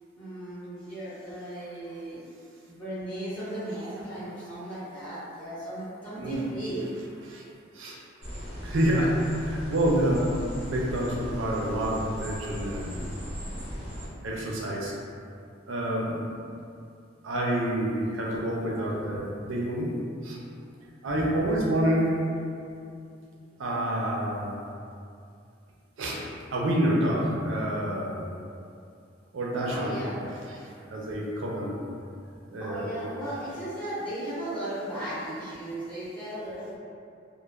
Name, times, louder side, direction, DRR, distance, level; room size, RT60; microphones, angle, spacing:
voice 1, 0.1-2.2 2.7-6.8 29.7-30.1 32.6-36.8, right 1 dB, 10° left, -15 dB, 1.2 m, -36 dB
sound 1, 8.2-14.1, equal, 30° right, 0.7 m, -37 dB
voice 2, 8.6-10.3 10.6-13.0 14.2-14.9 15.7-16.2 17.2-20.4 21.0-22.1 23.6-24.5 26.0-26.2 26.5-28.3 29.3-30.0 30.2-31.8 32.5-33.1, right 1 dB, 85° right, -3 dB, 0.4 m, -28 dB
3.1 x 2.0 x 2.3 m, 2.5 s
head